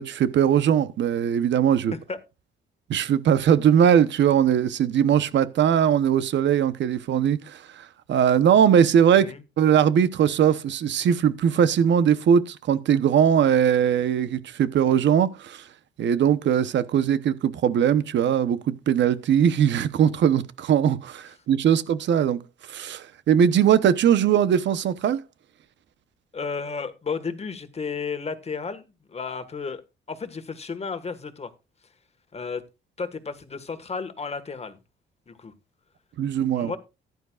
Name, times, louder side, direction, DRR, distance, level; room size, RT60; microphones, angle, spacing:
voice 1, 0.0-1.9 2.9-15.6 16.0-22.4 22.7-25.2 36.2-36.7, right 8 dB, 65° right, 0.9 m, -20 dB
voice 2, 26.3-29.8 30.1-31.5 32.3-32.6 33.0-34.8 35.3-35.5 36.5-36.8, left 5 dB, 30° left, 1.6 m, -33 dB
14.5 x 11.0 x 2.4 m
cardioid pair, 90°, 20 cm